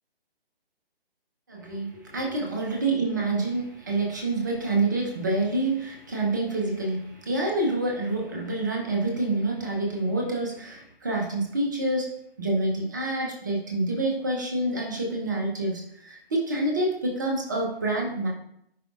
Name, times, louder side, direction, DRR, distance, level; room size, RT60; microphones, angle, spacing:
voice 1, 1.5-12.1 12.4-18.3, right 2 dB, 20° right, -1 dB, 0.8 m, -27 dB
10.0 x 4.7 x 2.5 m, 0.74 s
figure-of-eight pair, 145°, 30 cm